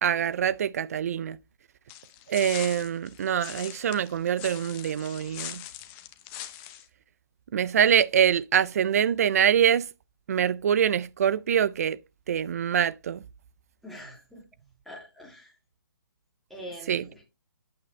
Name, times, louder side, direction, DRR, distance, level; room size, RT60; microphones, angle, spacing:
voice 1, 0.0-1.4 2.3-5.6 7.5-9.9 10.3-12.0 12.3-13.2 16.9-17.0, right 9 dB, 40° right, 0.4 m, -24 dB
sound 1, 1.9-6.8, left 13 dB, 20° left, 0.8 m, -41 dB
voice 2, 13.8-14.4 14.8-15.5 16.5-17.2, equal, ahead, 2.7 m, -44 dB
8.7 x 7.4 x 3.2 m
hypercardioid pair, 160°, 12 cm